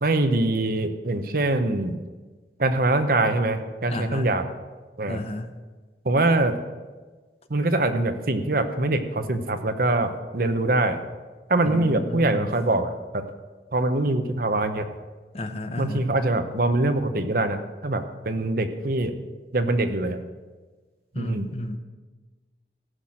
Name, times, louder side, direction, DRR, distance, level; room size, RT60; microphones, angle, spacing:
voice 1, 0.0-2.0 2.6-4.4 5.0-5.2 6.0-6.5 7.5-11.0 11.5-13.2 13.7-14.9 15.8-19.2 19.5-20.2 21.2-21.5, right 2 dB, 55° right, 8 dB, 0.9 m, -23 dB
voice 2, 3.9-4.3 5.1-5.6 11.6-12.5 15.3-16.0 21.1-21.8, left 1 dB, 35° left, 7 dB, 0.8 m, -32 dB
14.5 x 5.8 x 7.7 m, 1.3 s
head